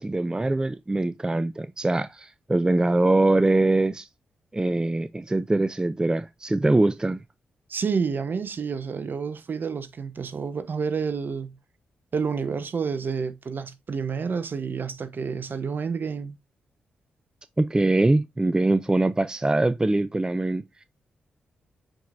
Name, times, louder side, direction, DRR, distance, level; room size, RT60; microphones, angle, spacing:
voice 1, 0.0-4.1 4.5-7.2 17.6-20.6, right 2 dB, 20° right, 0.5 m, -23 dB
voice 2, 7.7-11.5 12.1-16.4, right 5 dB, 55° right, 1.0 m, -29 dB
7.8 x 4.8 x 2.6 m
supercardioid pair, 40°, 4 cm